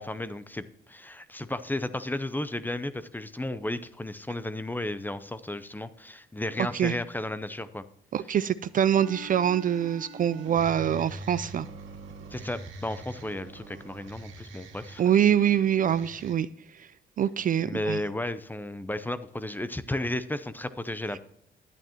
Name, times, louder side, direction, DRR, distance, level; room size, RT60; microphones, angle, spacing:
voice 1, 0.0-7.8 12.3-15.0 17.6-21.2, left 1 dB, 10° left, 13 dB, 0.5 m, -33 dB
voice 2, 8.1-11.7 15.0-16.5 16.8-16.9 17.2-18.0, right 9 dB, 45° right, 15 dB, 0.4 m, -24 dB
sound 1, 9.0-16.3, right 2 dB, 70° right, 1.9 m, -43 dB
11.0 x 8.9 x 2.9 m, 0.75 s
cardioid pair, 90°, 20 cm